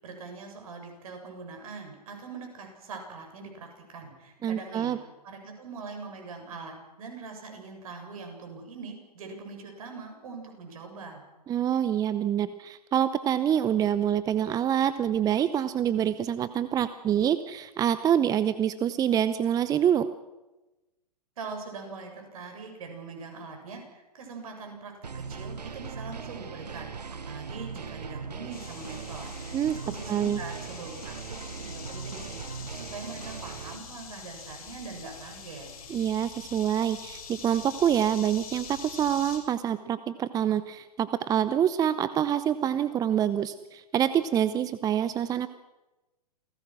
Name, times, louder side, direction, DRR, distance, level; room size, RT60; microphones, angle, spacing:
voice 1, 0.0-4.9 5.2-11.2 21.4-29.6 29.8-35.7, right 4 dB, 60° right, 3 dB, 7.5 m, -42 dB
voice 2, 4.4-5.0 11.5-20.1 29.5-29.7 30.1-30.4 35.9-45.5, right 9 dB, 20° right, 14 dB, 0.7 m, -26 dB
sound 1, 25.0-33.8, right 5 dB, 80° right, 1.3 m, -39 dB
sound 2, 28.5-39.4, left 6 dB, 60° left, 6.6 m, -44 dB
28.5 x 18.5 x 6.2 m, 1.0 s
figure-of-eight pair, 115°, 21 cm